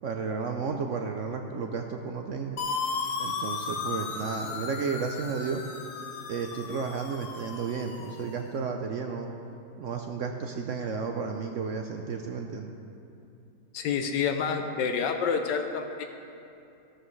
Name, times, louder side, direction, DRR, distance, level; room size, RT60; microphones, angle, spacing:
voice 1, 0.0-2.6 3.2-5.6 6.3-9.3 9.8-12.7, right 5 dB, 70° right, 4 dB, 0.7 m, -32 dB
sound 1, 2.6-8.4, left 5 dB, 70° left, 1.4 m, -35 dB
voice 2, 13.7-16.0, left 6 dB, 85° left, 5 dB, 1.3 m, -28 dB
13.0 x 12.5 x 3.2 m, 2.7 s
omnidirectional pair, 1.9 m